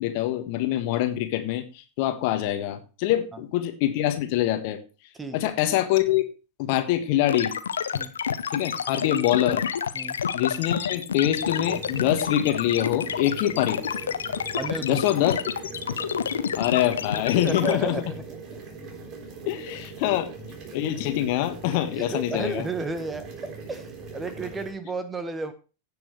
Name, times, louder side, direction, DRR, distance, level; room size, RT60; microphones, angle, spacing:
voice 1, 0.0-4.8 5.3-6.2 6.6-7.5 8.5-9.6 10.3-13.8 14.8-15.5 16.6-17.9 19.5-20.3 20.7-22.7, left 13 dB, 45° left, 8 dB, 1.5 m, -25 dB
voice 2, 5.2-5.5 7.9-8.1 9.9-10.2 14.5-15.0 17.2-18.2 21.9-23.3 23.7-25.5, right 3 dB, 15° right, 10 dB, 1.4 m, -32 dB
sound 1, 7.3-17.7, left 7 dB, 65° left, 0.8 m, -28 dB
sound 2, 11.3-24.7, right 4 dB, 35° right, 3.6 m, -41 dB
16.5 x 6.9 x 3.2 m, 0.33 s
figure-of-eight pair, 90°, 0 cm